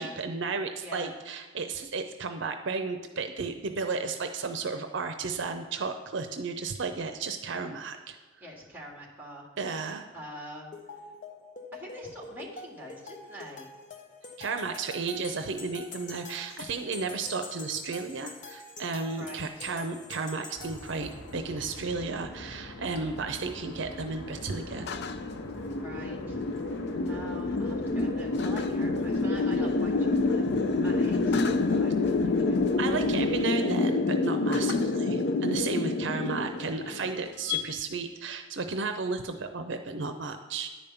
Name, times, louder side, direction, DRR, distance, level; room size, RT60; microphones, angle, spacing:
voice 1, 0.0-8.2 9.6-10.1 14.4-24.9 32.8-40.7, right 4 dB, 70° right, 7 dB, 0.6 m, -33 dB
voice 2, 0.8-1.1 8.4-9.5 10.1-10.7 11.7-13.7 19.2-19.7 25.8-26.4 27.1-30.4 30.8-32.6, right 1 dB, 10° right, -1 dB, 2.0 m, -44 dB
sound 1, 10.7-21.3, left 3 dB, 40° left, 0.9 m, -45 dB
sound 2, 20.5-33.4, equal, 75° left, 1.6 m, -46 dB
sound 3, 21.2-37.6, left 3 dB, 60° left, 0.5 m, -28 dB
10.0 x 5.2 x 7.0 m, 1.4 s
head